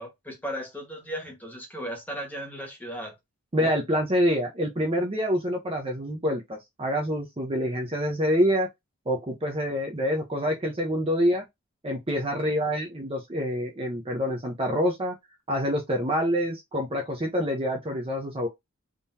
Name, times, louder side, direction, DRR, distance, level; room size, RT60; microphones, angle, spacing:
voice 1, 0.0-3.1, equal, 10° left, 1.4 m, -36 dB
voice 2, 3.5-8.7 9.1-11.4 11.8-15.1 15.5-18.5, equal, 25° right, 0.8 m, -26 dB
3.7 x 3.0 x 2.7 m
head